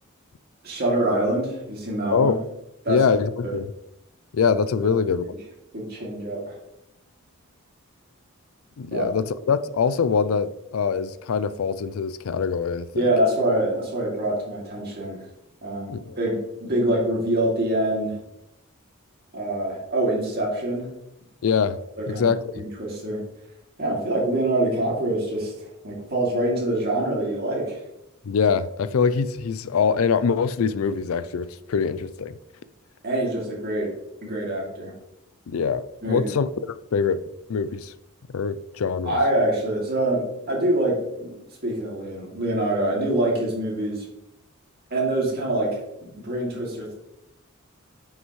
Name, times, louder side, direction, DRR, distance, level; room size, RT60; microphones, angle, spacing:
voice 1, 0.6-2.3 2.8-3.0 3.4-3.5 5.3-5.4 5.7-6.4 8.9-9.1 13.0-15.2 15.6-18.1 19.3-20.9 22.0-22.3 22.5-23.2 23.8-25.5 25.8-27.8 33.0-33.9 34.2-34.9 36.0-36.3 39.0-41.3 41.6-44.1 44.9-46.9, right 1 dB, 50° right, 2.6 m, -25 dB
voice 2, 2.9-3.7 4.3-5.3 8.8-13.1 15.9-16.2 21.4-21.8 22.1-22.7 28.2-32.3 35.5-37.2 37.5-37.9 38.3-39.2, left 6 dB, 70° left, 0.4 m, -24 dB
9.6 x 5.8 x 3.2 m
head